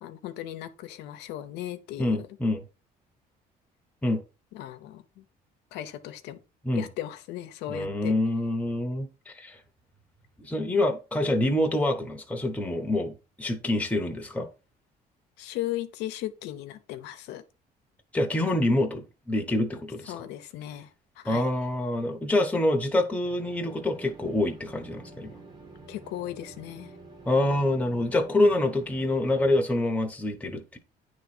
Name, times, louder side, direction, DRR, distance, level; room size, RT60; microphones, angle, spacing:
voice 1, 0.0-2.3 4.5-5.2 5.7-6.4 6.7-8.1 15.4-17.4 20.1-20.9 21.2-21.5 25.9-26.9, left 13 dB, 90° left, 0.8 m, -37 dB
voice 2, 2.0-2.6 4.0-4.2 6.6-6.9 7.7-9.6 10.4-14.5 18.1-20.2 21.2-25.3 27.2-30.8, left 1 dB, 10° left, 1.0 m, -26 dB
sound 1, 23.2-29.6, right 2 dB, 25° right, 1.2 m, -48 dB
9.1 x 3.2 x 4.3 m
cardioid pair, 110°, 17 cm